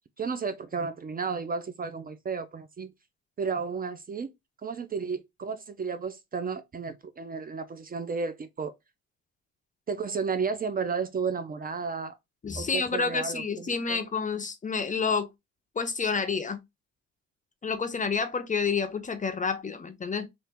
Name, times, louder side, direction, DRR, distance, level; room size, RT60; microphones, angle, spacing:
voice 1, 0.2-2.9 3.4-4.3 4.6-8.7 9.9-12.2 12.6-14.0, right 5 dB, 30° right, 0.4 m, -33 dB
voice 2, 12.4-15.3 15.8-16.6 17.6-20.3, left 5 dB, 25° left, 0.5 m, -29 dB
2.8 x 2.5 x 3.4 m
cardioid pair, 90°, 30 cm